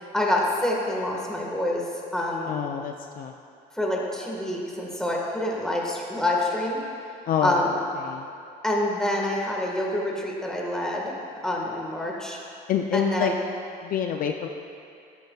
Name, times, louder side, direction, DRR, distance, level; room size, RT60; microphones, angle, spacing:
voice 1, 0.1-1.9 2.1-2.5 3.7-6.8 7.4-7.8 8.6-11.1 11.4-12.4 12.9-13.3, left 1 dB, 5° left, -2 dB, 1.6 m, -26 dB
voice 2, 2.5-3.3 7.3-7.7 8.0-8.3 12.7-13.3 13.8-14.5, left 8 dB, 55° left, 4 dB, 0.5 m, -27 dB
13.0 x 9.2 x 2.4 m, 2.5 s
cardioid pair, 110°, 17 cm